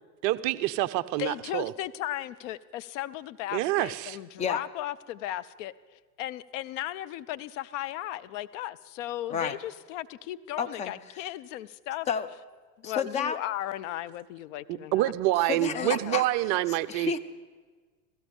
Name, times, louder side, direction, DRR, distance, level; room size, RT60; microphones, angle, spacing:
voice 1, 0.2-1.7 3.5-4.2 14.7-17.1, right 16 dB, 35° right, 12 dB, 0.6 m, -27 dB
voice 2, 1.2-12.1 12.8-15.1 15.7-16.2, left 13 dB, 50° left, 16 dB, 0.7 m, -36 dB
voice 3, 10.6-10.9 12.1-12.3 12.8-13.4 15.4-16.3 16.7-17.2, left 7 dB, 15° left, 12 dB, 0.4 m, -30 dB
16.5 x 14.5 x 5.3 m, 1.4 s
hypercardioid pair, 110°, 50 cm